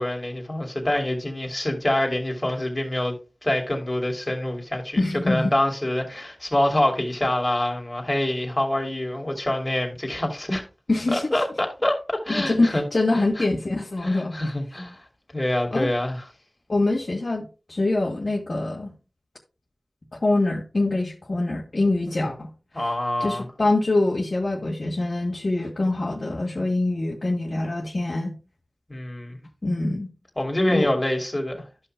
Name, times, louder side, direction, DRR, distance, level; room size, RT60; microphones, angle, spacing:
voice 1, 0.0-3.1 3.4-5.0 5.3-10.6 11.1-12.8 13.1-13.4 14.0-15.0 15.3-16.2 22.7-23.4 28.9-29.4 30.4-31.6, left 1 dB, 25° left, 2.8 m, -25 dB
voice 2, 5.0-5.5 10.9-11.3 12.4-14.4 15.7-15.9 16.7-18.9 20.1-22.5 23.2-28.3 29.6-30.1 30.7-30.9, left 2 dB, 55° left, 2.0 m, -24 dB
14.0 x 5.6 x 2.2 m
wide cardioid pair, 45°, 0 cm